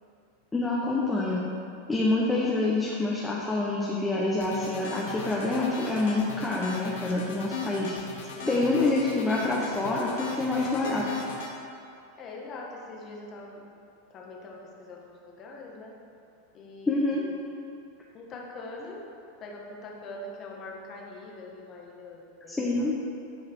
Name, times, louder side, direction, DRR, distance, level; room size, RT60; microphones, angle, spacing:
voice 1, 0.5-1.4 1.9-7.9 8.5-11.0 16.9-17.3 22.5-22.9, left 2 dB, 10° left, -5 dB, 1.1 m, -27 dB
sound 1, 4.4-11.5, left 4 dB, 75° left, 1.4 m, -38 dB
voice 2, 12.2-13.6 14.1-15.9 16.5-17.1 17.5-17.8 18.1-19.0 19.4-22.9, left 2 dB, 35° left, -1 dB, 1.5 m, -43 dB
11.0 x 4.8 x 4.6 m, 2.7 s
hypercardioid pair, 115°, 0 cm